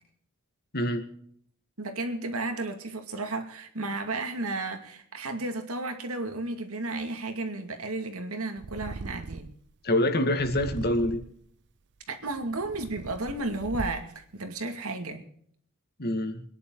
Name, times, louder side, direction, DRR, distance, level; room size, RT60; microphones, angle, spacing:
voice 1, 0.7-1.1 9.8-11.2 16.0-16.4, left 1 dB, 45° left, 7 dB, 2.2 m, -26 dB
voice 2, 1.8-9.5 12.1-15.2, right 2 dB, 75° right, 6 dB, 2.4 m, -33 dB
Purr, 8.6-9.7 10.3-11.4 12.1-14.2, right 3 dB, 55° right, 0.6 m, -40 dB
24.5 x 10.5 x 4.0 m, 0.63 s
head